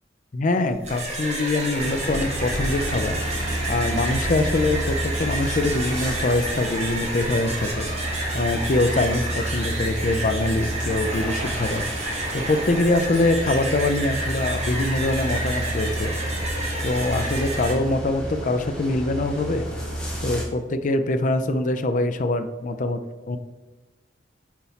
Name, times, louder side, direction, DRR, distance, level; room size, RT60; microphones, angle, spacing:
voice 1, 0.3-3.2 3.7-7.9 8.3-11.8 12.3-16.1 16.8-19.7 20.2-23.0 23.3-23.4, left 2 dB, 40° left, 9 dB, 0.4 m, -24 dB
sound 1, 0.7-17.7, right 2 dB, 35° right, 1.3 m, -30 dB
sound 2, 1.8-20.4, equal, 5° left, 1.0 m, -30 dB
4.4 x 4.1 x 5.6 m, 1.2 s
head